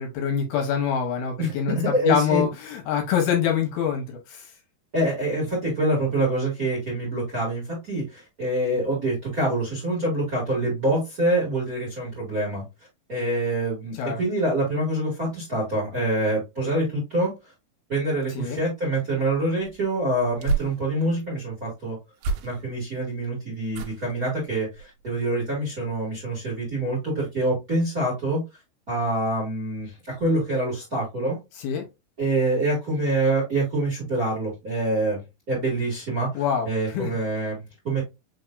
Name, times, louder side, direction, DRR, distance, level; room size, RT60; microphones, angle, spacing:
voice 1, 0.0-4.5 14.0-14.2 18.4-18.6 31.6-31.8 36.3-37.2, left 7 dB, 75° left, 2 dB, 2.9 m, -25 dB
voice 2, 1.4-2.4 4.9-12.6 13.1-17.3 17.9-22.0 22.4-28.4 28.9-31.4 32.2-35.2 35.5-38.0, right 1 dB, 30° right, -3 dB, 1.8 m, -26 dB
sound 1, 19.6-21.3 22.2-22.9 23.7-24.2 24.7-25.0 25.3-25.4, right 4 dB, 80° right, 2.5 m, -31 dB
6.2 x 3.4 x 2.5 m, 0.23 s
omnidirectional pair, 4.9 m